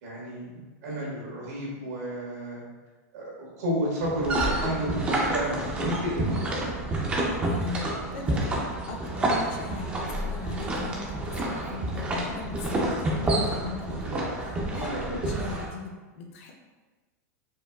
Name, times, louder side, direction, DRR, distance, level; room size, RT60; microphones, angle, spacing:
voice 1, 0.0-2.6 3.1-6.7 14.1-14.3 14.8-15.2, equal, 80° right, -5 dB, 1.5 m, -32 dB
sound 1, 4.0-15.7, right 1 dB, 15° right, 0.4 m, -29 dB
voice 2, 7.5-14.3 14.7-15.9 16.2-16.5, left 4 dB, 50° left, 1 dB, 0.6 m, -38 dB
4.5 x 2.3 x 2.3 m, 1.3 s
supercardioid pair, 160°, 9 cm